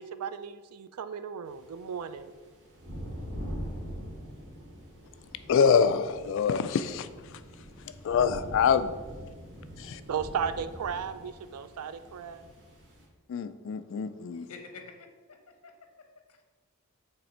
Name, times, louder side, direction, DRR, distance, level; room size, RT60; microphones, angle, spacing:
voice 1, 0.0-2.3 10.1-12.5, right 7 dB, 85° right, 0.4 m, -35 dB
sound 1, 1.5-13.0, equal, 60° right, 1.6 m, -43 dB
voice 2, 5.5-7.1 8.0-8.9 9.8-10.0 13.3-14.5, left 6 dB, 60° left, 0.3 m, -25 dB
voice 3, 14.3-15.7 16.3-16.4, left 4 dB, 85° left, 0.8 m, -48 dB
6.8 x 3.2 x 4.3 m
head